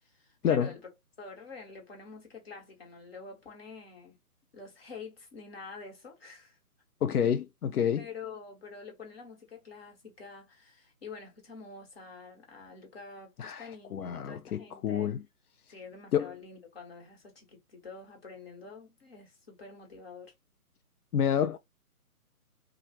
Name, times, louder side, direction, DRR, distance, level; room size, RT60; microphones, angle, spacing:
voice 1, 0.2-0.8 1.2-4.2 4.5-6.6 8.0-15.1 15.7-20.3, left 4 dB, 40° left, 1.4 m, -47 dB
voice 2, 7.0-8.1 13.4-15.2 16.1-16.3 21.1-21.6, left 8 dB, 75° left, 0.5 m, -28 dB
2.9 x 2.4 x 2.8 m
hypercardioid pair, 160°, 45 cm